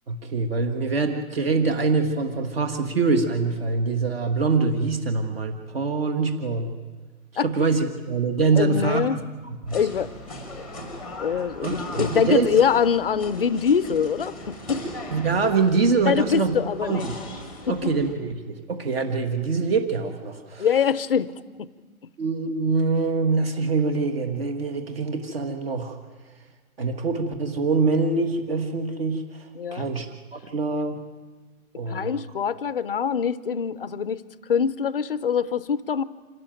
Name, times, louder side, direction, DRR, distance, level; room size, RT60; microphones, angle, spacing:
voice 1, 0.1-6.7 7.3-9.0 9.7-9.8 11.6-12.5 15.1-17.1 17.7-20.7 22.2-26.0 26.8-29.4 29.7-30.1 30.3-31.0 31.7-32.2, right 4 dB, 40° right, 6 dB, 1.6 m, -24 dB
voice 2, 8.5-9.2 9.7-10.1 11.2-14.9 16.0-17.1 17.7-17.9 20.6-21.3 21.6-21.7 29.6-29.9 31.9-34.2 34.5-36.0, left 7 dB, 40° left, 17 dB, 0.6 m, -24 dB
sound 1, 9.7-18.1, left 1 dB, ahead, 1.1 m, -38 dB
26.0 x 13.0 x 9.1 m, 1.4 s
hypercardioid pair, 160°, 44 cm